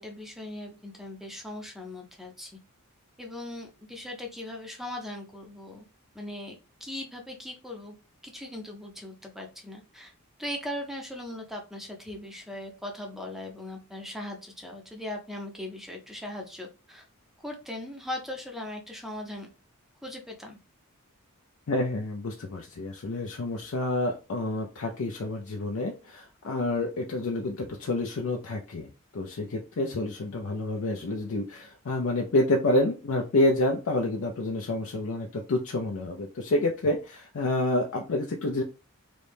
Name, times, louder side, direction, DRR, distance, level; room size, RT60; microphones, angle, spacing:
voice 1, 0.0-2.6 3.2-5.9 6.1-8.0 8.2-10.1 10.4-17.1 17.4-19.5 20.0-20.6, left 1 dB, ahead, 2 dB, 0.5 m, -39 dB
voice 2, 21.7-28.9 29.1-38.6, left 2 dB, 65° left, 1 dB, 0.5 m, -28 dB
3.1 x 2.7 x 3.3 m, 0.31 s
head